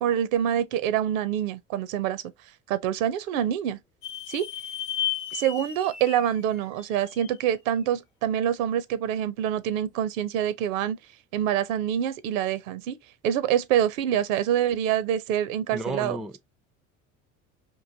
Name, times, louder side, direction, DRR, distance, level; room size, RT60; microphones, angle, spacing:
voice 1, 0.0-2.2 2.7-3.8 4.3-4.5 5.3-11.0 11.3-13.0 13.2-16.2, right 10 dB, 75° right, 0.6 m, -26 dB
sound 1, 4.0-7.5, left 11 dB, 45° left, 1.0 m, -34 dB
voice 2, 15.7-16.4, right 1 dB, ahead, 0.3 m, -32 dB
3.8 x 2.6 x 2.5 m
hypercardioid pair, 70°, 40 cm